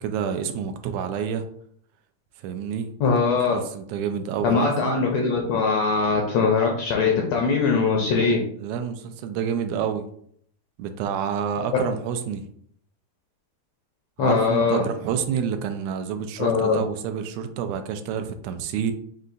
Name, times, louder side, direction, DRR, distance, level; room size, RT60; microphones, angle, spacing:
voice 1, 0.0-1.5 2.4-2.9 3.5-5.0 8.6-10.1 10.8-12.4 14.2-18.9, right 7 dB, 80° right, 8 dB, 1.8 m, -28 dB
voice 2, 3.0-3.6 4.4-8.4 14.2-14.8 16.4-16.8, left 4 dB, 75° left, 0 dB, 1.5 m, -21 dB
5.4 x 2.4 x 3.8 m, 0.64 s
omnidirectional pair, 3.6 m